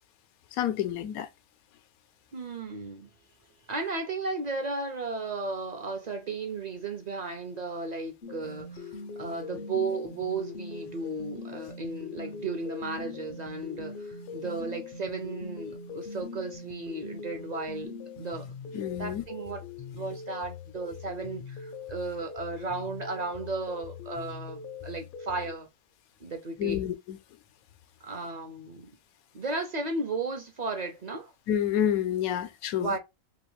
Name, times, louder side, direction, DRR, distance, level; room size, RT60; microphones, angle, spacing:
voice 1, 0.5-1.3 18.7-19.2 26.6-27.2 31.5-33.0, left 10 dB, 85° left, 1.0 m, -29 dB
voice 2, 2.3-3.1 3.7-17.9 18.2-19.6 19.9-25.7 26.2-26.8 28.0-29.0 29.3-31.3 32.8-33.0, right 3 dB, 50° right, 0.5 m, -35 dB
sound 1, 8.2-25.6, left 4 dB, 60° left, 0.6 m, -41 dB
2.9 x 2.8 x 3.0 m
omnidirectional pair, 1.5 m